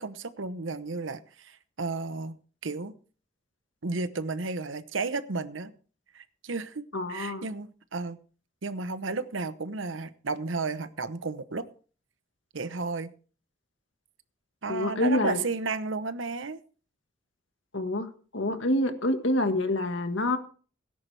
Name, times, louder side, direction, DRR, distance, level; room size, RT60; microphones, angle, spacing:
voice 1, 0.0-2.9 3.8-5.7 6.1-8.2 8.6-11.7 12.5-13.1 14.6-16.6, right 3 dB, 85° right, 12 dB, 0.9 m, -33 dB
voice 2, 6.9-7.5 14.7-15.4 17.7-18.1 18.3-20.4, left 1 dB, 80° left, 7 dB, 1.7 m, -27 dB
17.5 x 10.5 x 3.4 m, 0.40 s
head